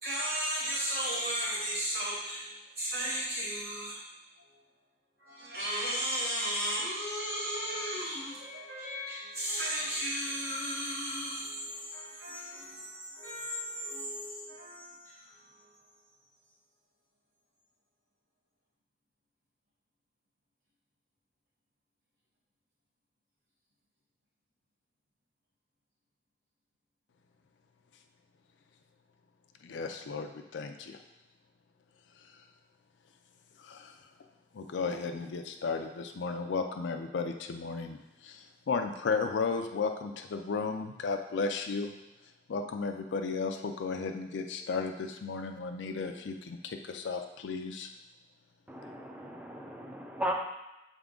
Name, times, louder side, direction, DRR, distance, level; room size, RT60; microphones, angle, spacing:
voice 1, 0.0-4.0 5.2-15.7, equal, 55° right, -7 dB, 1.0 m, -35 dB
voice 2, 29.6-31.0 32.2-32.4 33.6-34.0 34.5-41.9 42.5-47.9, left 4 dB, 85° left, 5 dB, 0.4 m, -34 dB
voice 3, 48.7-50.3, equal, 10° right, 1 dB, 0.5 m, -36 dB
7.9 x 3.6 x 3.7 m, 0.96 s
head